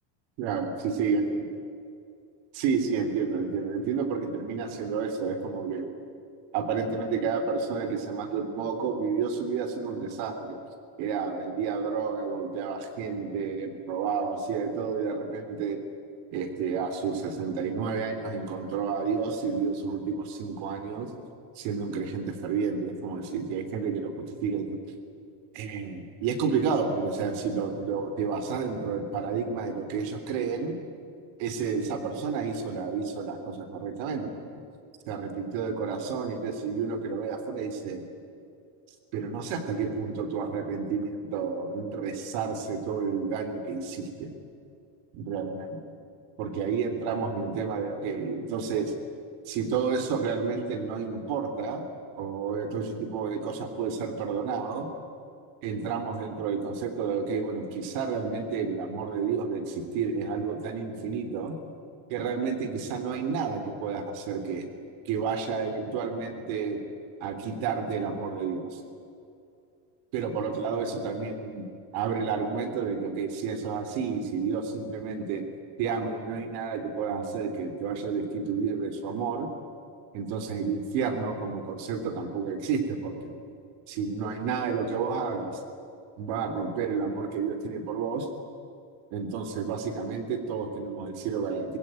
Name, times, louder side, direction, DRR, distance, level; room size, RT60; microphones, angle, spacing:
voice 1, 0.4-1.4 2.5-5.9 6.5-10.6 11.0-15.8 16.3-21.1 21.6-24.8 25.5-30.8 31.4-34.6 35.1-38.0 39.1-44.3 45.1-45.8 46.4-48.9 49.5-51.9 52.2-54.9 55.6-61.6 62.1-64.7 65.1-66.8 67.2-68.8 70.1-71.6 71.9-75.4 75.8-79.5 80.1-83.4 83.9-85.5 86.2-88.3 89.1-91.8, right 5 dB, 65° right, 7 dB, 3.5 m, -30 dB
25.5 x 20.5 x 9.0 m, 2.5 s
cardioid pair, 155°, 49 cm